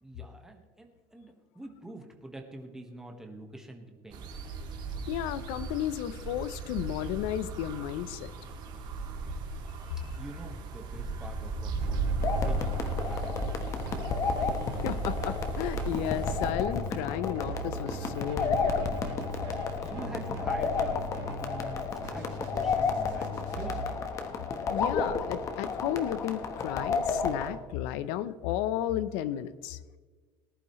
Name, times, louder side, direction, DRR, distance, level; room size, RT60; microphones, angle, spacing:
voice 1, 0.0-4.3 10.0-14.0 19.8-24.0, right 1 dB, 5° right, 2 dB, 1.5 m, -46 dB
sound 1, 4.1-16.5, right 3 dB, 40° right, 2.0 m, -36 dB
voice 2, 5.1-8.3 14.8-18.9 24.7-29.8, left 12 dB, 65° left, 15 dB, 0.7 m, -33 dB
Keyboard (musical), 11.8-23.9, equal, 80° right, 2.2 m, -40 dB
sound 2, 12.2-27.5, left 4 dB, 30° left, 1.2 m, -32 dB
19.0 x 11.5 x 3.2 m, 1.4 s
cardioid pair, 165°, 11 cm